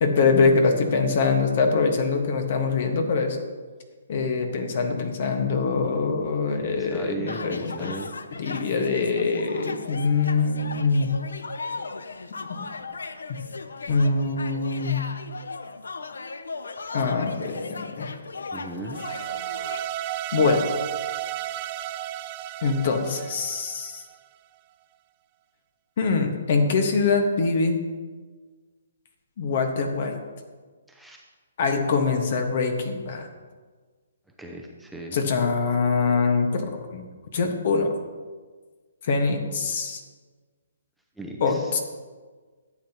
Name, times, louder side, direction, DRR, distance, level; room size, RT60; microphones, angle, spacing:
voice 1, 0.0-3.4 4.1-7.9 8.4-11.1 12.5-12.6 13.9-14.9 16.9-18.2 20.3-20.6 22.6-24.0 26.0-27.8 29.4-30.2 31.6-33.3 35.1-37.1 37.3-37.9 39.0-40.0 41.4-41.8, left 4 dB, 50° left, 5 dB, 1.4 m, -23 dB
voice 2, 6.6-8.4 18.5-19.0 30.9-31.2 34.3-35.2 41.2-41.8, right 2 dB, ahead, -1 dB, 0.7 m, -38 dB
sound 1, 7.3-19.9, left 4 dB, 85° left, 0.6 m, -37 dB
sound 2, 18.9-24.1, right 13 dB, 30° right, 0.4 m, -33 dB
12.5 x 8.3 x 2.9 m, 1.4 s
hypercardioid pair, 150°, 0 cm